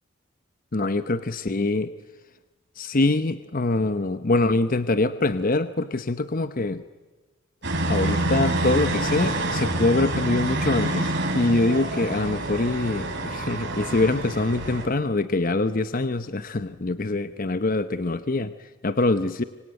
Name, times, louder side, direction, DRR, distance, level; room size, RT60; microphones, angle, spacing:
voice 1, 0.7-1.9 2.8-6.8 7.9-19.4, left 2 dB, 40° left, 12 dB, 0.8 m, -24 dB
sound 1, 7.6-14.8, right 1 dB, 60° right, 5.3 m, -27 dB
25.5 x 24.5 x 9.1 m, 1.2 s
head